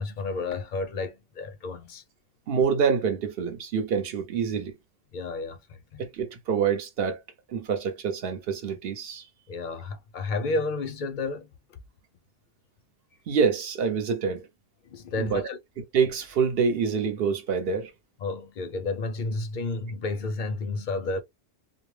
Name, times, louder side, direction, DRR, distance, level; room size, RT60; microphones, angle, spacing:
voice 1, 0.0-2.0 5.1-6.0 9.5-11.5 14.8-15.6 18.2-21.2, left 3 dB, 55° left, 0.6 m, -31 dB
voice 2, 2.5-4.7 6.0-7.2 7.5-9.3 13.3-14.5 15.2-15.4 15.8-17.9, right 6 dB, 60° right, 0.9 m, -26 dB
2.3 x 2.0 x 3.1 m
omnidirectional pair, 1.1 m